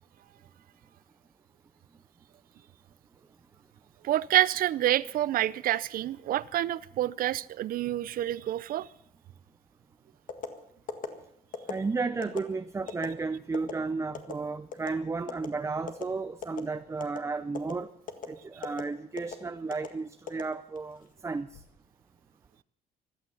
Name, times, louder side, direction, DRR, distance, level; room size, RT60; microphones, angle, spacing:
voice 1, 4.0-8.9, right 13 dB, 60° right, 0.6 m, -28 dB
sound 1, 10.3-10.5 10.9-11.1 11.5-11.8 12.2-12.4 12.9-13.1 13.5-13.7 14.1-14.3 14.7-14.9 15.3-15.5 15.9-16.0 16.4-16.7 17.0-17.2 17.5-17.7 18.1-18.3 18.6-18.8 19.2-19.4 19.7-19.9 20.3-20.9 21.3-21.6, left 6 dB, 55° left, 1.9 m, -36 dB
voice 2, 11.7-17.9 18.3-21.5, right 4 dB, 15° right, 0.5 m, -33 dB
15.5 x 12.5 x 7.2 m
cardioid pair, 110°, 17 cm